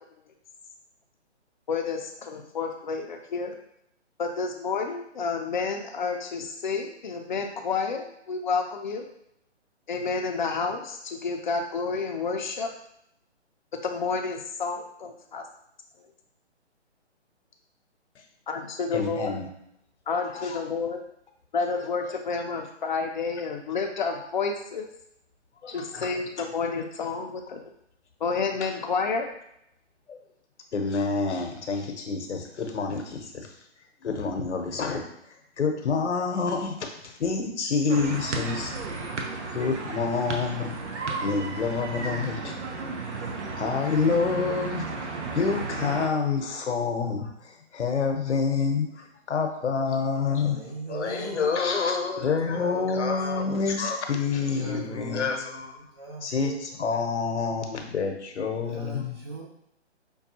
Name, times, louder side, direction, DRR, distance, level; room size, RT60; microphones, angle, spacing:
voice 1, 1.7-3.5 4.2-9.0 9.9-12.7 13.8-15.4 18.5-19.4 20.1-21.0 21.5-24.9 25.7-27.6 28.2-29.3, left 4 dB, 40° left, 3 dB, 0.5 m, -30 dB
voice 2, 18.9-19.5 20.3-20.6 25.6-26.2 30.1-30.2 30.7-33.5 34.0-38.7 39.5-42.6 43.3-44.9 45.3-50.6 50.9-55.9 56.2-59.2, left 5 dB, 75° left, 4 dB, 0.9 m, -28 dB
sound 1, 37.9-46.1, right 3 dB, 75° right, 0.7 m, -34 dB
voice 3, 50.4-53.5 54.6-56.7 58.6-59.4, right 2 dB, 25° right, -3 dB, 0.6 m, -40 dB
5.3 x 2.3 x 2.7 m, 0.77 s
hypercardioid pair, 150°, 35 cm